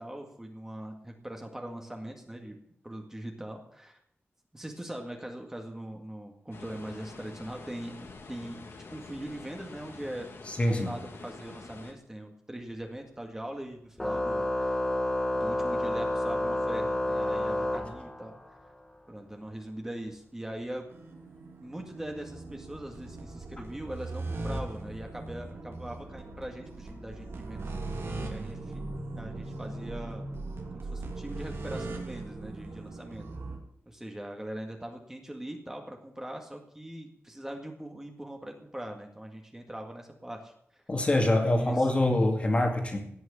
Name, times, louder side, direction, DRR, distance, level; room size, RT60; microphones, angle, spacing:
voice 1, 0.0-2.6 2.8-4.0 4.5-10.3 10.6-14.8 15.3-18.4 19.1-20.9 21.6-27.7 28.3-30.2 30.7-33.2 33.9-40.5 41.4-41.9, right 1 dB, 10° right, 2 dB, 1.9 m, -41 dB
sound 1, 6.5-11.9, left 3 dB, 70° left, 2.2 m, -47 dB
voice 2, 10.5-11.0 40.9-43.1, left 1 dB, 30° left, 3 dB, 2.3 m, -25 dB
Organ, 14.0-18.5, left 1 dB, 15° left, 1.8 m, -29 dB
sound 2, 20.9-33.6, right 2 dB, 75° right, 3.0 m, -39 dB
17.5 x 6.4 x 9.9 m, 0.68 s
wide cardioid pair, 160°, 4 cm